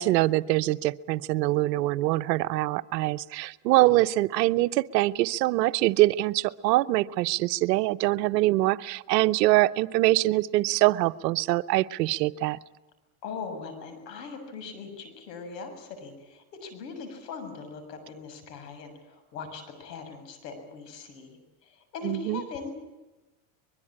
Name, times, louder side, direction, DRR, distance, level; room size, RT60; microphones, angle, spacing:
voice 1, 0.0-12.6 22.0-22.4, right 18 dB, 85° right, 14 dB, 1.0 m, -24 dB
voice 2, 13.2-22.7, left 5 dB, 90° left, 7 dB, 7.1 m, -40 dB
23.5 x 22.5 x 8.8 m, 1.1 s
supercardioid pair, 105°, 48 cm